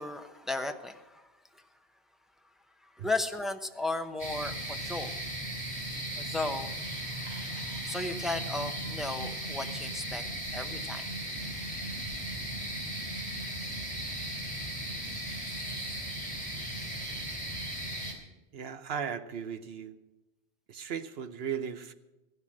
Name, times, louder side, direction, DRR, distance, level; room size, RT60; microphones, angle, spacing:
voice 1, 0.0-1.6 2.8-5.1 6.2-6.7 7.6-10.2 10.5-11.4, left 2 dB, ahead, 6 dB, 0.7 m, -35 dB
sound 1, 4.2-18.1, right 1 dB, 25° right, 3.2 m, -37 dB
voice 2, 18.5-20.0 20.7-21.9, right 7 dB, 65° right, 10 dB, 1.0 m, -36 dB
15.0 x 11.0 x 6.2 m, 1.1 s
omnidirectional pair, 1.1 m